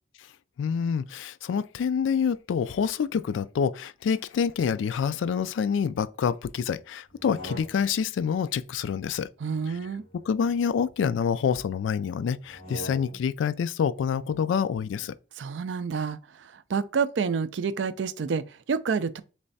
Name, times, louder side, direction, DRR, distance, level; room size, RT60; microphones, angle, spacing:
voice 1, 0.6-9.3 10.3-15.1, left 7 dB, 85° left, 0.3 m, -27 dB
sound 1, 7.1-8.1 9.4-11.1 12.4-13.4, right 1 dB, 30° left, 1.6 m, -44 dB
voice 2, 9.4-10.0 15.4-19.2, right 5 dB, 70° right, 0.4 m, -29 dB
3.3 x 3.1 x 4.0 m
head